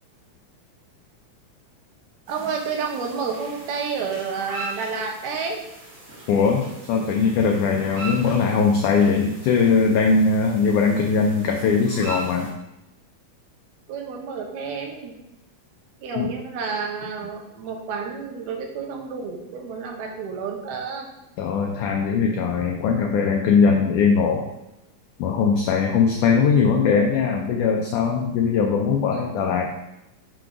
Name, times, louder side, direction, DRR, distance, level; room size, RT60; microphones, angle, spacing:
sound 1, 2.3-12.5, right 2 dB, 35° right, 1.4 m, -40 dB
voice 1, 2.3-5.6 13.9-15.1 16.0-21.1, right 5 dB, 80° right, 2 dB, 2.9 m, -30 dB
voice 2, 6.3-12.5 16.2-16.3 21.4-24.5 25.2-29.7, left 5 dB, 90° left, 1 dB, 1.7 m, -20 dB
7.0 x 3.9 x 4.7 m, 0.93 s
omnidirectional pair, 4.4 m